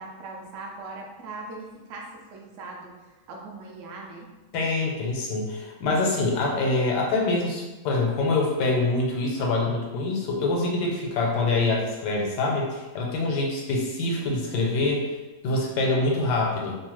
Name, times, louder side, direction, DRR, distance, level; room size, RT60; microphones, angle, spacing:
voice 1, 0.0-3.0 3.3-4.3, right 3 dB, 75° right, 0 dB, 0.7 m, -40 dB
voice 2, 4.5-15.0 15.4-16.8, left 2 dB, 80° left, -1 dB, 1.2 m, -25 dB
2.9 x 2.1 x 3.0 m, 1.1 s
omnidirectional pair, 1.8 m